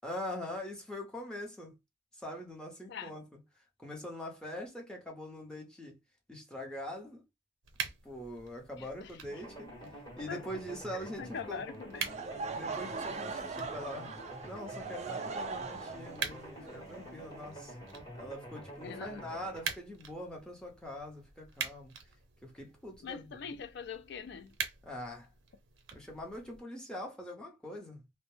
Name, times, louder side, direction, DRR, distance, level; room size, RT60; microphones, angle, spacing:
voice 1, 0.0-1.8 2.2-3.4 3.8-6.0 6.3-7.2 8.0-9.9 10.2-11.6 12.5-14.1 14.4-17.7 18.1-21.9 22.4-23.4 24.8-25.3 25.9-28.0, left 1 dB, 5° left, 0.7 m, -43 dB
sound 1, 7.6-26.6, right 6 dB, 90° right, 0.6 m, -46 dB
voice 2, 8.8-9.4 10.3-10.4 10.9-12.2 18.8-19.1 23.0-24.5, left 6 dB, 65° left, 0.4 m, -43 dB
sound 2, 9.3-19.7, right 1 dB, 20° left, 1.0 m, -48 dB
Laughter / Crowd, 12.0-17.9, right 4 dB, 35° right, 0.4 m, -40 dB
2.1 x 2.0 x 3.1 m
head